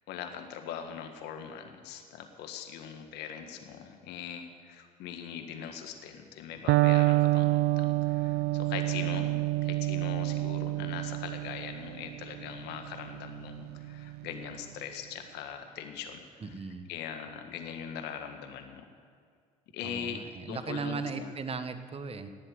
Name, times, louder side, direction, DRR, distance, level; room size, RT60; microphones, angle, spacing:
voice 1, 0.1-16.6 16.9-18.9 19.7-20.2 20.5-21.3, left 8 dB, 70° left, 5 dB, 1.7 m, -41 dB
Electric guitar, 6.7-14.5, right 18 dB, 65° right, 0.5 m, -28 dB
voice 2, 16.4-16.9 19.8-22.3, right 5 dB, 35° right, 10 dB, 1.3 m, -37 dB
19.5 x 7.7 x 8.0 m, 2.1 s
hypercardioid pair, 70°, 18 cm